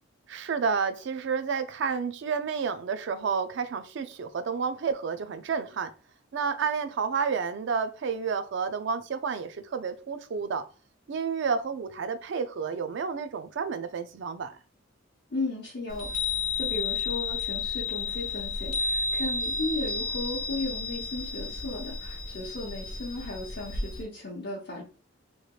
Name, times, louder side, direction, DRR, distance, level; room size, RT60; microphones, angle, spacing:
voice 1, 0.3-5.9 6.3-10.6 11.1-14.6, right 5 dB, 60° right, 0.4 m, -30 dB
voice 2, 15.3-16.1 16.5-24.8, left 2 dB, 55° left, 0.8 m, -35 dB
Chime, 15.9-24.0, left 4 dB, 70° left, 1.0 m, -32 dB
3.1 x 2.9 x 2.3 m
head